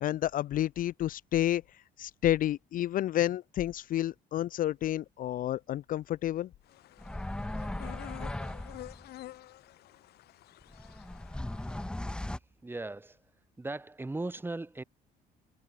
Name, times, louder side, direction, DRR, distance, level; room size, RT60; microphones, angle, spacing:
voice 1, 0.0-1.6 2.0-6.5, left 13 dB, 55° left, 0.5 m, -30 dB
sound 1, 6.7-11.9, left 15 dB, 70° left, 1.1 m, -49 dB
sound 2, 7.0-9.1 10.6-12.4, left 1 dB, 5° left, 0.6 m, -38 dB
voice 2, 12.6-13.2 13.6-14.8, right 2 dB, 10° right, 2.3 m, -37 dB
cardioid pair, 110°, 17 cm